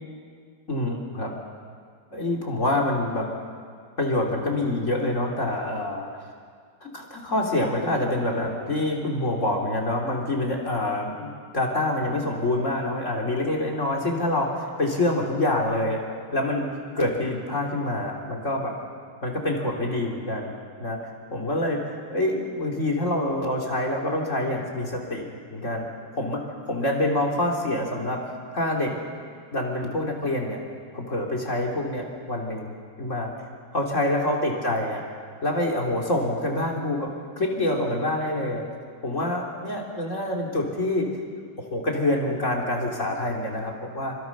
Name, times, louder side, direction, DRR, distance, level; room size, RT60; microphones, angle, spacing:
voice 1, 0.7-1.3 2.1-3.3 4.0-6.1 6.8-16.0 16.3-18.7 19.2-20.5 20.8-25.2 25.5-25.8 26.1-28.2 28.5-28.9 29.5-30.6 30.9-32.7 33.0-33.3 33.7-35.0 35.4-37.1 37.4-38.7 39.0-41.1 41.6-44.2, left 1 dB, 20° left, -1 dB, 2.4 m, -26 dB
27.5 x 25.5 x 6.0 m, 2.1 s
omnidirectional pair, 5.5 m